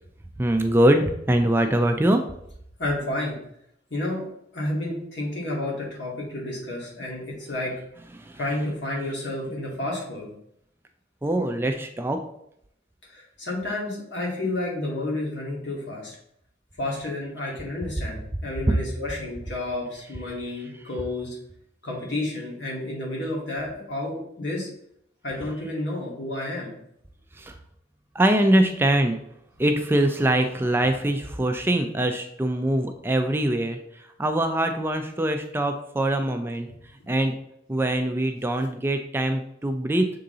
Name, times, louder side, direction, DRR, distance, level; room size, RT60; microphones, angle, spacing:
voice 1, 0.4-2.2 8.1-8.4 11.2-12.2 27.3-27.6 28.1-29.2 29.6-36.7 37.1-37.4 37.7-40.1, right 1 dB, 10° right, 5 dB, 0.4 m, -23 dB
voice 2, 2.8-3.4 3.9-4.2 4.5-7.7 8.4-10.3 13.1-16.2 16.8-21.4 21.8-24.7 25.2-26.7, left 1 dB, 65° left, -3 dB, 2.3 m, -30 dB
6.7 x 3.8 x 3.8 m, 0.73 s
head